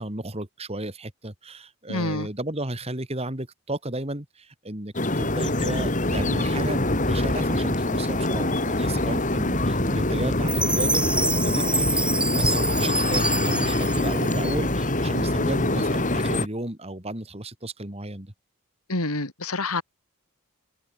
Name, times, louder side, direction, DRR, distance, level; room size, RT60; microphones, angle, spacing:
voice 1, 0.0-18.3, right 1 dB, 25° right, 2.8 m, -33 dB
voice 2, 1.9-2.3 18.9-19.8, left 2 dB, 80° left, 4.3 m, -27 dB
sound 1, 4.9-16.5, left 1 dB, 35° left, 3.1 m, -24 dB
Chime, 10.5-14.8, right 2 dB, 5° right, 1.7 m, -27 dB
head